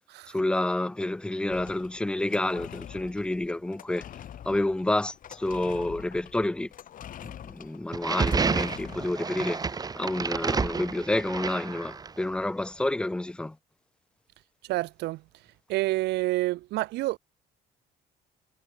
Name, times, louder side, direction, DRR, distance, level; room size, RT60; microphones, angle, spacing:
voice 1, 0.3-4.1 4.5-6.7 7.2-9.6 10.0-13.6, left 1 dB, 5° left, 0.3 m, -29 dB
sound 1, 1.4-3.0 3.9-4.8 6.3-6.4 6.7-7.6 8.2-8.7, left 18 dB, 85° left, 7.4 m, -63 dB
sound 2, 1.5-9.4, left 10 dB, 55° left, 1.9 m, -45 dB
sound 3, 7.9-12.2, right 4 dB, 20° right, 1.0 m, -30 dB
voice 2, 14.7-15.2 15.7-17.2, right 18 dB, 80° right, 1.2 m, -28 dB
cardioid pair, 110°, 17 cm